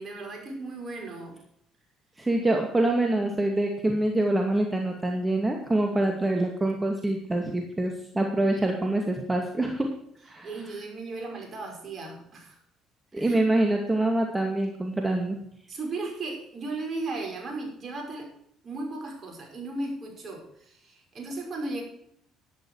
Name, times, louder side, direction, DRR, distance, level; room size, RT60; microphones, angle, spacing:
voice 1, 0.0-1.4 10.4-12.6 13.1-13.5 15.7-18.3 18.6-21.8, right 2 dB, 45° right, 2 dB, 5.9 m, -36 dB
voice 2, 2.2-9.9 10.3-10.5 13.1-15.4, right 2 dB, 20° right, 2 dB, 2.3 m, -25 dB
12.0 x 11.5 x 4.8 m, 0.70 s
hypercardioid pair, 55°, 0 cm